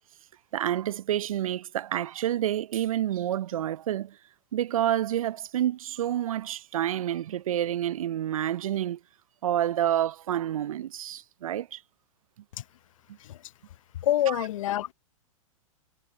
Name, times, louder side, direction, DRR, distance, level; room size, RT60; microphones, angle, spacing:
voice 1, 0.5-4.2 4.5-9.0 9.4-11.8 14.3-14.4, right 11 dB, 70° right, 0.7 m, -28 dB
voice 2, 14.0-14.9, left 12 dB, 65° left, 0.9 m, -26 dB
hypercardioid pair, 110°, 18 cm